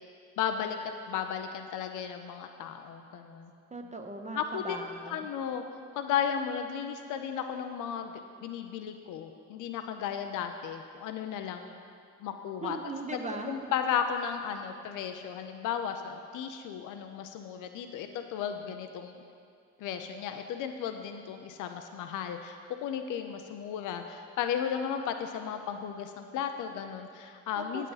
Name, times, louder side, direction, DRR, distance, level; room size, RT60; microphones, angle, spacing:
voice 1, 0.4-0.8 1.1-3.5 4.4-5.6 6.0-8.1 8.4-11.7 12.2-12.8 13.1-19.2 19.8-27.9, left 8 dB, 85° left, 6 dB, 0.6 m, -34 dB
voice 2, 3.7-5.3 12.6-13.5 27.6-27.9, right 3 dB, 25° right, 3 dB, 0.8 m, -39 dB
9.1 x 9.0 x 4.0 m, 2.3 s
cardioid pair, 90°, 30 cm